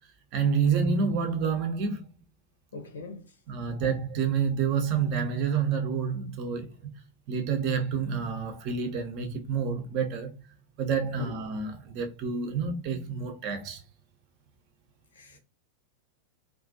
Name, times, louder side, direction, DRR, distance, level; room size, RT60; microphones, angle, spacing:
voice 1, 0.3-2.0 3.5-6.9 7.3-10.3 10.8-13.8, right 6 dB, 40° right, 0.6 m, -28 dB
voice 2, 2.7-3.3 11.2-11.4 15.1-15.4, left 4 dB, 65° left, 0.6 m, -39 dB
2.4 x 2.2 x 2.5 m
figure-of-eight pair, 90°, 0 cm